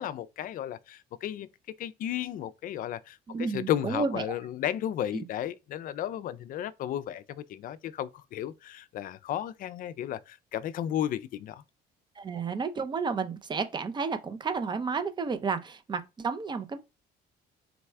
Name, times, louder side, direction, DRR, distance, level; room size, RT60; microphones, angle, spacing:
voice 1, 0.0-1.5 1.8-11.6, left 11 dB, 55° left, 0.4 m, -34 dB
voice 2, 3.3-4.4 5.1-5.2 12.2-16.8, right 5 dB, 25° right, 0.5 m, -31 dB
4.0 x 2.3 x 4.3 m
cardioid pair, 110°, 17 cm